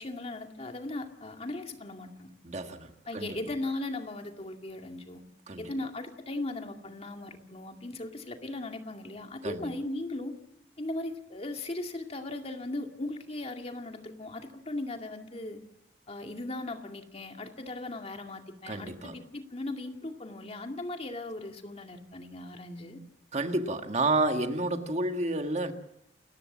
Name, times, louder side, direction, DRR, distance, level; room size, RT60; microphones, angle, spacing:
voice 1, 0.0-2.3 3.1-5.2 5.6-10.4 10.8-15.6 16.1-23.0, left 2 dB, 35° left, 4 dB, 2.3 m, -38 dB
voice 2, 2.4-3.4 5.5-5.6 9.4-9.7 18.7-19.1 23.3-25.7, right 2 dB, 40° right, 6 dB, 1.6 m, -30 dB
29.0 x 15.0 x 7.3 m, 0.78 s
head